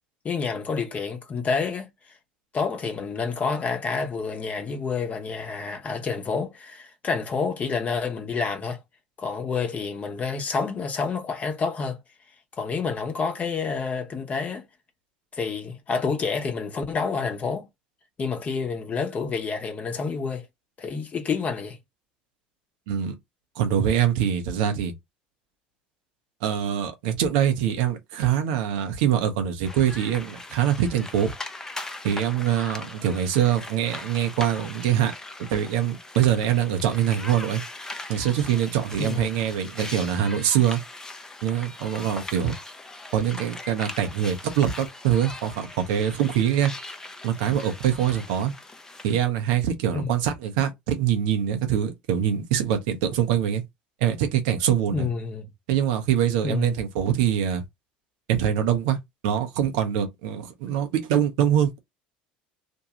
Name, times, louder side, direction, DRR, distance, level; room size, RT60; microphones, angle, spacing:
voice 1, 0.2-1.9 2.5-8.8 9.2-12.0 12.6-14.6 15.3-17.7 18.2-20.5 20.8-21.8 39.0-39.3 49.9-50.1 54.9-55.5 56.4-56.7, left 5 dB, 35° left, 0.8 m, -28 dB
voice 2, 23.6-24.9 26.4-31.3 32.0-35.1 35.4-37.6 38.1-40.8 41.4-42.5 43.1-46.7 47.2-48.5 49.0-53.6 54.0-55.1 55.7-57.6 58.3-59.0 59.2-61.8, right 9 dB, 70° right, 0.7 m, -24 dB
sound 1, 29.6-49.2, left 2 dB, 15° left, 0.5 m, -40 dB
2.6 x 2.2 x 2.9 m
hypercardioid pair, 75°, 4 cm